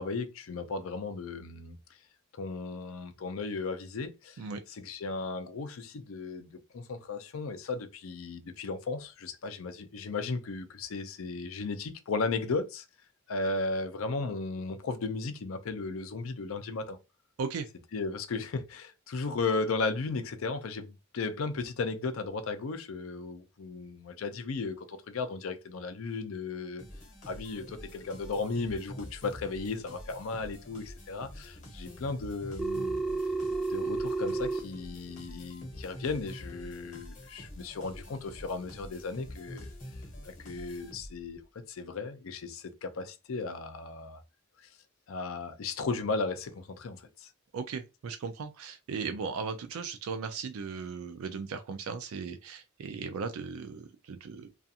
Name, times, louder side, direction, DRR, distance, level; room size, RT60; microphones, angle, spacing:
voice 1, 0.0-1.8 2.4-4.4 4.7-12.9 13.3-17.0 17.9-26.8 27.3-33.0 33.7-39.7 40.3-41.4 41.7-44.2 45.1-47.3 49.0-49.1, left 3 dB, 65° left, 0.5 m, -35 dB
sound 1, 26.8-41.4, left 1 dB, 35° left, 0.9 m, -46 dB
Telephone, 32.6-34.6, right 3 dB, ahead, 0.5 m, -31 dB
voice 2, 47.5-54.5, right 5 dB, 70° right, 0.4 m, -37 dB
2.4 x 2.4 x 2.7 m
head